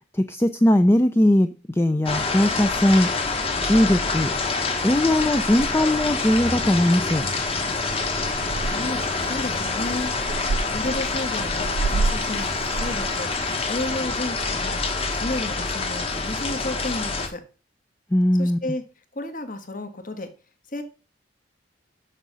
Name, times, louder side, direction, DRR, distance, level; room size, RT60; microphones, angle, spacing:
voice 1, 0.1-3.1 3.6-4.3 4.8-7.3 18.1-18.6, left 1 dB, 15° left, 0.5 m, -19 dB
sound 1, 2.1-17.3, left 3 dB, 30° left, 1.4 m, -26 dB
Purr / Meow, 5.2-14.0, right 3 dB, 75° right, 0.4 m, -32 dB
voice 2, 8.6-10.1 10.7-12.5 12.7-14.8 15.1-17.4 18.4-18.8 19.1-20.3 20.7-20.8, left 2 dB, 50° left, 1.5 m, -32 dB
6.7 x 6.7 x 6.1 m
head